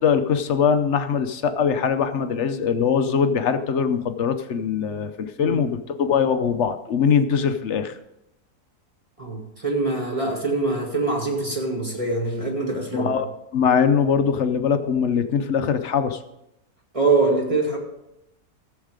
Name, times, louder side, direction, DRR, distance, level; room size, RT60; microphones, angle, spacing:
voice 1, 0.0-8.0 12.9-13.3 13.5-16.2, left 7 dB, 55° left, 9 dB, 0.8 m, -22 dB
voice 2, 9.2-13.1 16.9-17.8, right 3 dB, 20° right, -1 dB, 2.2 m, -23 dB
14.0 x 7.4 x 5.0 m, 0.86 s
omnidirectional pair, 1.7 m